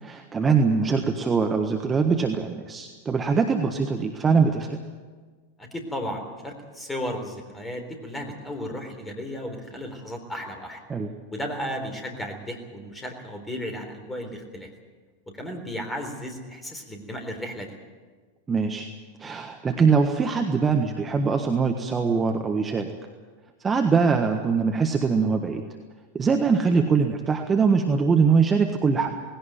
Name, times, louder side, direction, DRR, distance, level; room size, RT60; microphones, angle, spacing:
voice 1, 0.0-4.8 10.9-11.1 18.5-18.9 19.2-22.9 23.6-25.6 26.1-29.1, right 5 dB, 20° right, 4 dB, 1.5 m, -22 dB
voice 2, 5.6-10.8 11.3-14.7 15.4-17.7, equal, 10° left, 4 dB, 3.8 m, -34 dB
18.5 x 17.5 x 9.2 m, 1.4 s
figure-of-eight pair, 90°, 0 cm